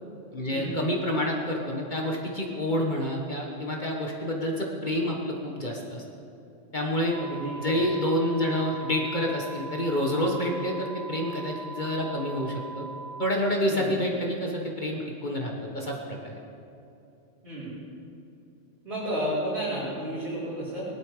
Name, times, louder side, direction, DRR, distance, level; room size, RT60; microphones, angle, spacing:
voice 1, 0.3-6.0 6.7-7.2 7.6-12.9 13.2-16.3, left 1 dB, 40° left, -1 dB, 1.5 m, -28 dB
sound 1, 7.1-13.3, right 3 dB, 10° left, 0.7 m, -40 dB
voice 2, 7.2-7.8 13.7-13.9 17.4-17.7 18.8-20.9, right 1 dB, 55° right, -13 dB, 4.9 m, -32 dB
18.5 x 12.0 x 5.0 m, 2.7 s
omnidirectional pair, 1.3 m